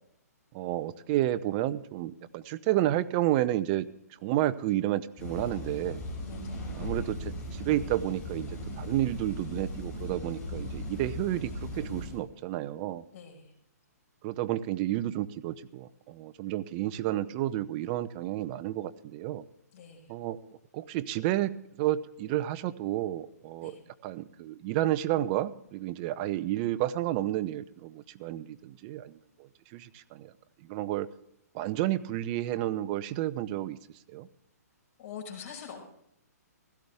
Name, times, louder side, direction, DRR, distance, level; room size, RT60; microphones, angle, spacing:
voice 1, 0.5-3.9 4.2-6.0 6.7-8.5 8.8-13.0 14.2-19.4 20.1-20.4 20.7-23.8 24.0-29.2 29.7-30.3 30.7-31.1 31.5-33.8 34.1-34.3, right 14 dB, 35° right, 15 dB, 0.7 m, -31 dB
sound 1, 5.2-12.2, left 1 dB, 15° left, 6.1 m, -38 dB
voice 2, 6.3-6.6 13.1-13.5 19.7-20.1 23.6-23.8 35.0-35.9, left 7 dB, 45° left, 0 dB, 5.7 m, -44 dB
16.5 x 14.0 x 3.5 m, 0.75 s
hypercardioid pair, 140°, 9 cm